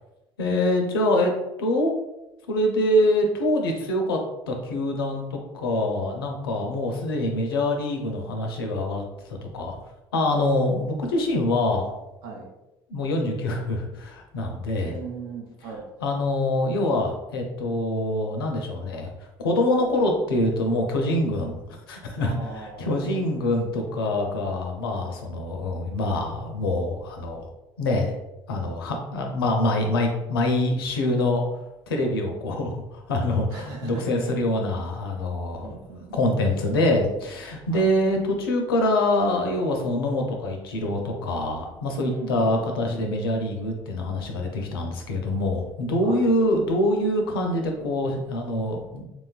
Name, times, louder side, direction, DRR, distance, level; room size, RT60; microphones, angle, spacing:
voice 1, 0.4-1.3 1.6-1.9 2.5-4.2 4.5-9.0 9.3-9.8 10.1-11.9 12.9-15.0 16.0-19.1 19.4-27.5 27.8-28.1 28.5-31.4 31.9-35.8 36.1-49.1, left 1 dB, 85° left, 2 dB, 0.4 m, -25 dB
voice 2, 12.2-12.5 14.8-15.9 22.2-23.2 33.5-34.2 34.8-35.0 35.6-36.1 37.7-37.9 42.0-43.1 46.0-46.3, right 5 dB, 65° right, 1 dB, 0.7 m, -39 dB
3.0 x 2.3 x 2.3 m, 0.97 s
hypercardioid pair, 60°, 12 cm